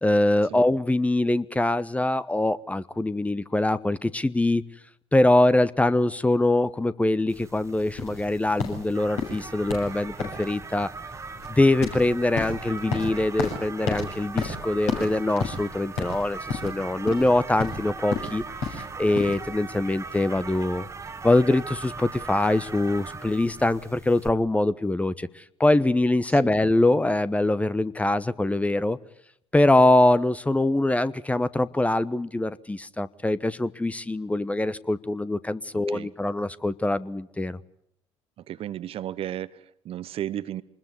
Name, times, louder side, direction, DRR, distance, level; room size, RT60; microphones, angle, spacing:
voice 1, 0.0-4.6 5.1-10.9 11.5-20.9 21.2-29.0 29.5-37.6, left 2 dB, 10° left, 1.1 m, -23 dB
sound 1, 7.3-24.3, right 4 dB, 20° right, 1.7 m, -39 dB
sound 2, 8.0-19.4, left 4 dB, 60° left, 7.2 m, -32 dB
voice 2, 38.5-40.6, right 12 dB, 45° right, 1.0 m, -33 dB
26.0 x 21.0 x 9.7 m
figure-of-eight pair, 55°, 13 cm